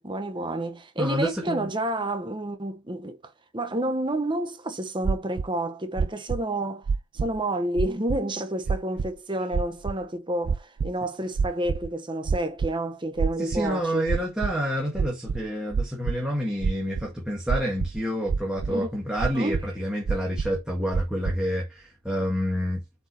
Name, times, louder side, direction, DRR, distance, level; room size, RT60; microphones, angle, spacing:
voice 1, 0.0-6.9 7.1-14.1 18.7-18.9 19.3-19.6, right 1 dB, 20° right, 1.1 m, -29 dB
voice 2, 1.0-1.7 13.4-22.8, equal, 5° right, 1.8 m, -28 dB
sound 1, 5.0-5.5 6.0-6.4 6.9-7.4 7.8-8.2 8.7-9.1 9.5-9.9 10.4-10.9 11.4-11.9 12.3-12.7 13.2-13.7 14.1-14.5 15.0-16.2 16.6-17.1 17.5-18.0 18.3-18.7 19.2-19.6 20.1-20.6 20.9-21.4, right 5 dB, 60° right, 0.4 m, -26 dB
7.6 x 4.8 x 4.3 m
head